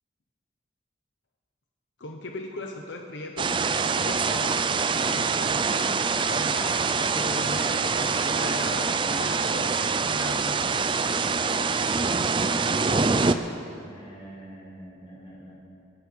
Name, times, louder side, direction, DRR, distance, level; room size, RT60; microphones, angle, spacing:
voice 1, 2.0-4.6 5.0-9.7 10.0-10.9, left 2 dB, 75° left, 2 dB, 1.0 m, -38 dB
sound 1, 3.4-13.3, right 4 dB, 25° right, 0.4 m, -25 dB
voice 2, 13.8-15.6, right 1 dB, 30° left, -7 dB, 4.7 m, -45 dB
26.0 x 9.6 x 4.7 m, 2.5 s
head